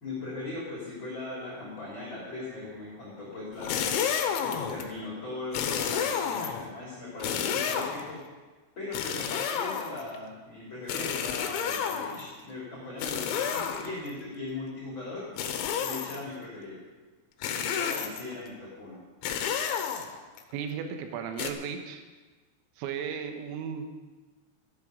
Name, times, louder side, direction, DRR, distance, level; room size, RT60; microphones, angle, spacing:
voice 1, 0.0-3.9 4.4-8.2 8.7-15.3 15.8-16.8 17.4-19.0, left 2 dB, 30° left, -6 dB, 3.3 m, -39 dB
sound 1, 3.5-4.9 5.5-6.7 7.2-8.1 8.9-10.2 10.9-12.3 13.0-14.1 15.4-16.3 17.4-18.3 19.2-20.4 21.4-21.5, left 8 dB, 85° left, 3.3 m, -31 dB
voice 2, 20.5-22.0 22.8-24.0, right 7 dB, 80° right, 5 dB, 3.4 m, -35 dB
14.0 x 12.0 x 5.2 m, 1.3 s
omnidirectional pair, 5.4 m